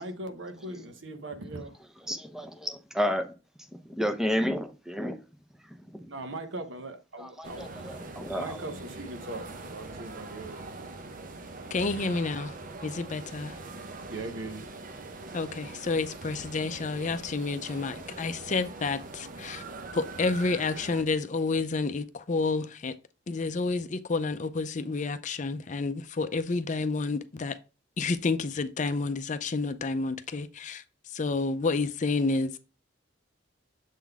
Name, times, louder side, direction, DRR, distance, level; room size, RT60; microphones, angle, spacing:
voice 1, 0.0-1.8 6.1-7.7 8.4-10.6 14.1-14.7, right 2 dB, 80° right, 1.0 m, -39 dB
voice 2, 2.0-3.3 3.8-5.1 5.7-6.1 7.2-8.7, equal, 5° right, 0.7 m, -31 dB
sound 1, 7.4-21.0, right 2 dB, 45° right, 0.7 m, -42 dB
voice 3, 11.7-12.5 12.8-13.5 15.3-19.6 19.9-22.9 23.3-27.6 28.0-30.8 31.1-32.5, left 3 dB, 40° left, 0.5 m, -30 dB
7.3 x 3.8 x 3.5 m
head